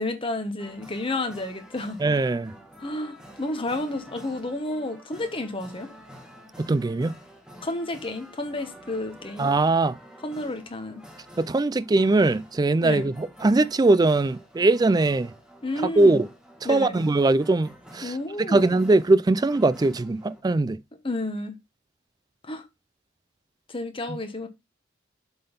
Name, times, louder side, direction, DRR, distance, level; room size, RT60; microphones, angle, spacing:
voice 1, 0.0-2.0 2.8-5.9 7.6-9.5 10.2-11.0 12.8-13.1 15.6-16.2 16.6-17.0 18.0-18.7 21.0-21.6 22.4-22.6 23.7-24.5, left 2 dB, 25° left, 1.2 m, -31 dB
sound 1, 0.6-20.4, equal, 5° right, 1.3 m, -49 dB
voice 2, 2.0-2.5 6.6-7.1 9.4-10.0 11.4-15.3 16.0-16.3 16.6-18.1 18.4-20.8, right 2 dB, 20° right, 0.3 m, -21 dB
7.7 x 3.9 x 5.4 m
head